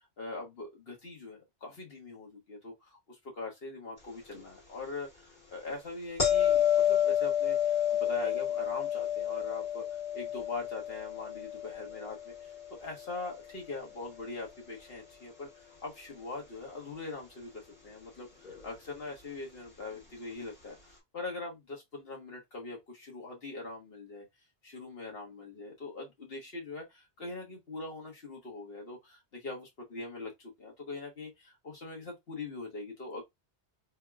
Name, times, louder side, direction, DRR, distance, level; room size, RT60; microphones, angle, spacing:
voice 1, 0.2-9.8 10.1-20.8 21.1-24.2 24.6-33.2, left 3 dB, 60° left, 1.4 m, -42 dB
sound 1, 6.2-13.2 18.4-18.6, left 10 dB, 45° left, 2.2 m, -30 dB
3.6 x 2.8 x 2.3 m
omnidirectional pair, 1.1 m